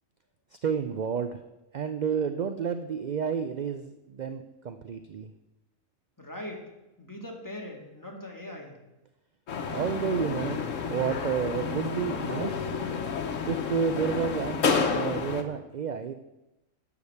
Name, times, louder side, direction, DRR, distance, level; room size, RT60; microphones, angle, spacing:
voice 1, 0.6-1.4 1.7-5.3 9.7-10.6 10.9-12.7 13.5-14.6 14.9-16.1, right 7 dB, 55° right, 9 dB, 0.5 m, -30 dB
voice 2, 6.2-6.7 7.0-8.8, left 1 dB, 15° left, 0 dB, 1.8 m, -40 dB
sound 1, 9.5-15.4, left 5 dB, 75° left, 1.4 m, -30 dB
12.0 x 5.0 x 8.1 m, 0.99 s
omnidirectional pair, 1.3 m